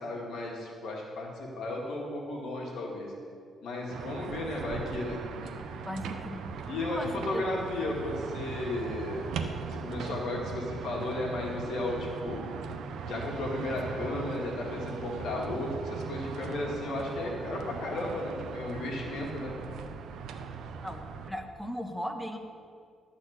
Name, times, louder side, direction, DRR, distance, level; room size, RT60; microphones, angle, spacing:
voice 1, 0.0-3.1 3.6-5.8 6.7-9.3 9.7-12.5 13.1-19.5, left 2 dB, 70° left, -2 dB, 2.1 m, -34 dB
sound 1, 3.9-21.3, right 5 dB, 75° right, 0.7 m, -39 dB
voice 2, 5.9-6.6 6.9-7.4 20.8-22.4, equal, ahead, 4 dB, 1.1 m, -37 dB
12.5 x 4.3 x 8.1 m, 2.2 s
cardioid pair, 90°, 0 cm